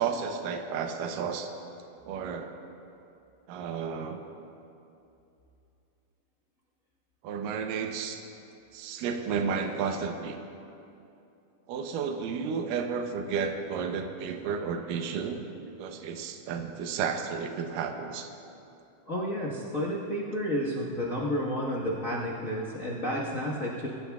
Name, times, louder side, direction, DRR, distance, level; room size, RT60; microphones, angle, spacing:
voice 1, 0.0-1.5 2.0-2.5 3.5-4.2 7.2-8.2 8.7-10.4 11.7-18.3, right 6 dB, 80° right, 5 dB, 2.4 m, -32 dB
voice 2, 19.1-23.9, equal, 80° left, -6 dB, 0.7 m, -31 dB
22.5 x 15.0 x 2.4 m, 2.7 s
omnidirectional pair, 4.0 m